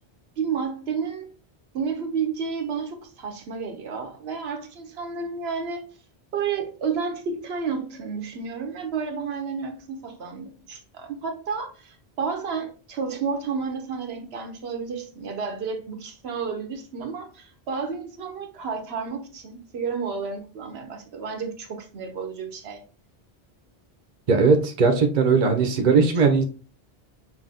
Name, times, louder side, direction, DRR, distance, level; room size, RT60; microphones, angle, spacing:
voice 1, 0.4-1.4 1.7-5.8 6.3-22.8, right 5 dB, 75° right, 0.9 m, -31 dB
voice 2, 24.3-26.4, right 4 dB, 50° right, 0.8 m, -19 dB
5.6 x 2.7 x 2.6 m
omnidirectional pair, 1.1 m